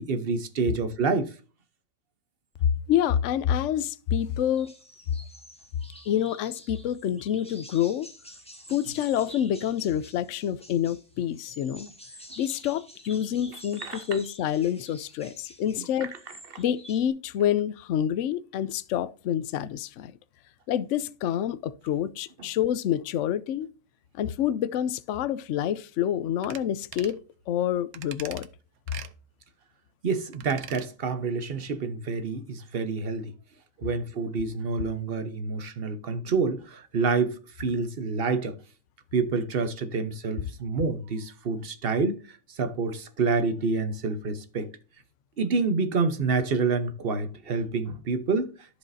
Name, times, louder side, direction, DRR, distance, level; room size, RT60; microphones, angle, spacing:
voice 1, 0.0-1.3 13.8-14.0 15.8-15.9 16.5-16.6 30.0-33.3 33.8-38.6 39.1-42.2 42.6-44.7 45.4-48.5, right 4 dB, 45° right, 1.1 m, -28 dB
voice 2, 2.9-4.7 6.1-8.1 8.7-11.9 12.4-16.1 16.6-20.2 20.7-23.7 24.1-27.2 27.5-28.5, left 10 dB, 65° left, 0.8 m, -27 dB
sound 1, 4.2-4.3 4.5-17.1, equal, 5° left, 1.5 m, -49 dB
sound 2, 26.4-26.6 26.9-27.2 27.9-28.5 28.9-29.1 30.3-30.9 31.2-31.3, right 10 dB, 75° right, 1.2 m, -42 dB
14.0 x 5.0 x 2.6 m
omnidirectional pair, 1.5 m